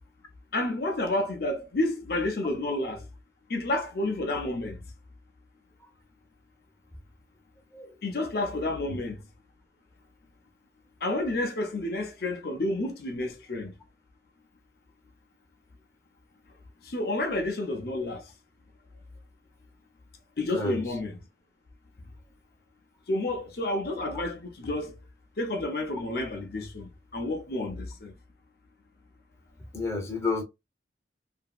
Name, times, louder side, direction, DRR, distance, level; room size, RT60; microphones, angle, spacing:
voice 1, 0.5-3.1 3.5-4.8 8.0-9.2 11.0-13.7 16.8-18.3 20.4-21.2 23.1-24.9 25.4-28.1, left 2 dB, 55° left, 0.6 m, -30 dB
voice 2, 20.4-20.9 29.7-30.4, left 3 dB, 15° left, 0.7 m, -31 dB
2.8 x 2.7 x 2.3 m
head